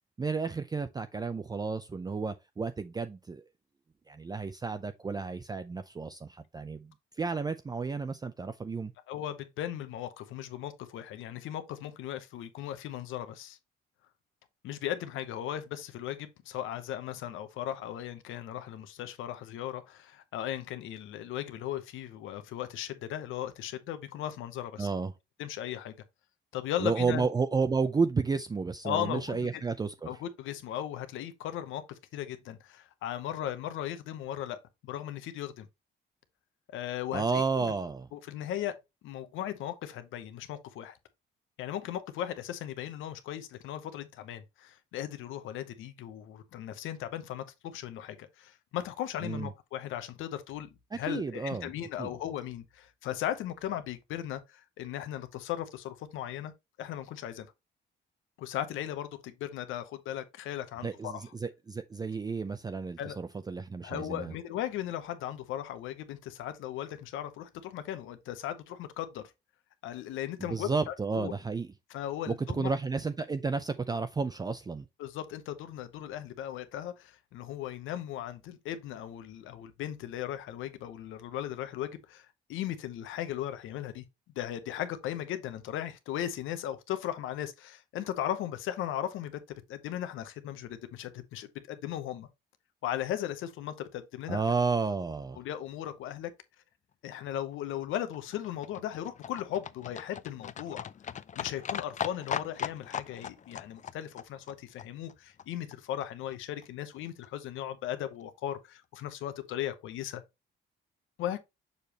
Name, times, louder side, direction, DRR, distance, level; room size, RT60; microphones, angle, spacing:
voice 1, 0.2-3.4 4.1-6.9 7.2-8.9 24.8-25.1 26.8-29.9 37.1-38.1 49.2-49.5 51.1-51.7 52.0-52.1 60.8-64.3 70.4-71.7 72.3-74.9 94.3-95.4, right 4 dB, 20° right, 0.4 m, -32 dB
voice 2, 9.1-13.6 14.6-24.9 25.4-25.9 26.5-27.3 28.8-29.6 30.1-35.7 36.7-37.2 37.6-37.7 38.1-38.8 39.0-41.0 41.6-56.5 56.8-57.5 58.4-61.3 63.0-63.2 63.8-69.3 69.8-71.3 71.9-72.7 75.0-84.0 84.4-92.3 92.8-94.4 95.4-96.3 97.0-100.9 101.4-110.2 111.2-111.4, left 11 dB, 90° left, 0.9 m, -37 dB
Livestock farm animals working animals, 97.5-105.8 106.0-106.1 106.3-106.4 106.6-106.7 106.9-107.0 107.2-107.3 107.6-107.7 107.9-108.0 108.2-108.3, left 8 dB, 40° left, 0.4 m, -39 dB
6.7 x 5.0 x 2.9 m
cardioid pair, 90°, 20 cm